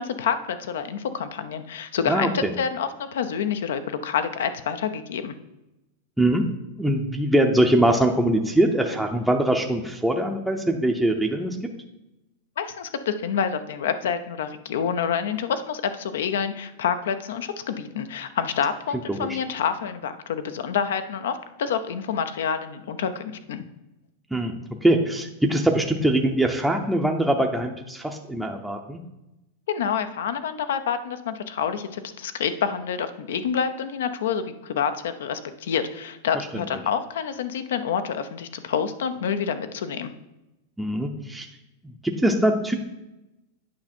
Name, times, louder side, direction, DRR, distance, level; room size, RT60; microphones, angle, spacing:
voice 1, 0.0-5.3 12.6-23.6 29.7-40.1, left 7 dB, 85° left, 10 dB, 0.7 m, -28 dB
voice 2, 2.1-2.5 6.2-6.5 6.8-11.6 19.1-19.3 24.3-24.5 24.8-29.0 36.5-36.6 40.8-41.5 41.8-42.7, right 1 dB, 5° right, 3 dB, 0.6 m, -22 dB
8.6 x 5.5 x 4.3 m, 0.95 s
supercardioid pair, 145°, 0 cm